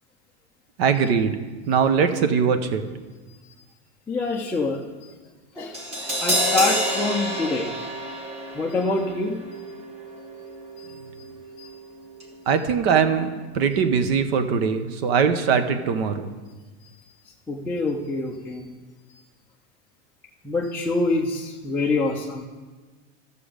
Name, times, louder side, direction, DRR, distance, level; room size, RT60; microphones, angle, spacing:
voice 1, 0.8-1.4 1.7-2.8 12.5-16.3, right 6 dB, 65° right, 9 dB, 1.0 m, -21 dB
voice 2, 4.1-5.1 5.5-7.7 8.5-9.4 10.8-10.9 11.6-11.7 17.5-18.7 20.4-22.4, left 3 dB, 5° left, -4 dB, 0.4 m, -26 dB
Crash cymbal, 5.7-11.9 12.2-12.3, equal, 20° right, 1.4 m, -29 dB
13.5 x 6.9 x 5.0 m, 1.3 s
supercardioid pair, 155°, 33 cm